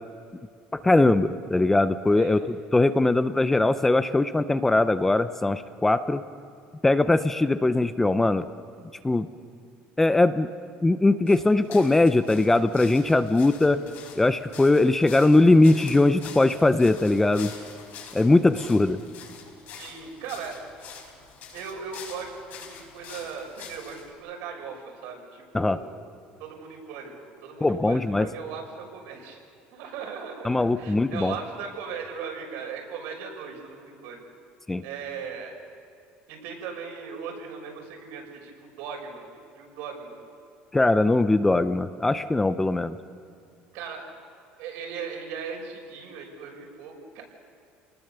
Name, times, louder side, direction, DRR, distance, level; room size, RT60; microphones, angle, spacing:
voice 1, 0.7-6.2 6.8-8.5 9.0-9.3 10.0-10.5 10.8-13.8 14.2-17.5 18.1-19.0 25.5-25.8 27.6-28.3 30.4-31.3 34.7-34.8 40.7-43.0, left 2 dB, 10° left, 12 dB, 0.6 m, -21 dB
sound 1, 11.3-24.1, left 6 dB, 55° left, 5.1 m, -45 dB
voice 2, 19.8-20.7 21.5-26.0 26.4-29.4 29.7-34.2 34.8-35.5 36.3-39.3 39.6-40.2 43.7-44.1 44.6-47.2, right 6 dB, 80° right, 1 dB, 6.0 m, -38 dB
29.0 x 19.5 x 6.9 m, 2.4 s
cardioid pair, 150°, 4 cm